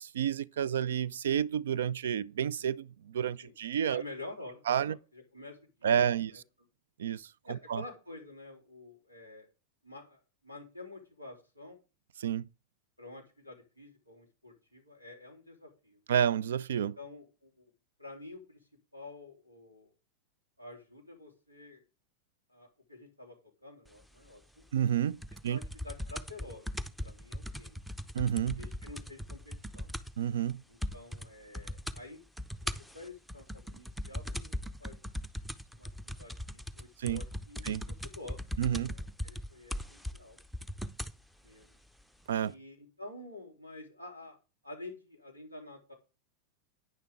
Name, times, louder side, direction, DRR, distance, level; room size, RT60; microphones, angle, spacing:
voice 1, 0.0-4.0 4.7-5.0 5.8-6.4 7.0-7.8 12.2-12.5 16.1-17.0 24.7-25.6 28.1-28.6 30.2-30.6 37.0-37.2 37.6-37.8 38.6-38.9 42.3-42.5, right 9 dB, 60° right, 0.4 m, -30 dB
voice 2, 3.9-6.0 6.3-6.4 7.4-9.5 9.8-11.8 13.0-16.0 16.9-17.6 18.0-18.6 18.9-19.9 20.6-21.8 22.5-23.4 23.6-24.6 25.5-26.7 27.0-27.8 28.6-30.0 30.7-32.2 32.6-34.5 34.8-35.1 35.7-40.4 41.4-41.8 42.4-44.4 44.6-45.9, left 2 dB, 85° right, 3.3 m, -49 dB
sound 1, 25.2-30.2 30.5-30.6 30.8-31.3 31.5-32.0 32.4-41.2 42.0-42.1, left 1 dB, 5° right, 0.6 m, -39 dB
10.5 x 9.5 x 3.6 m
figure-of-eight pair, 90°, 0 cm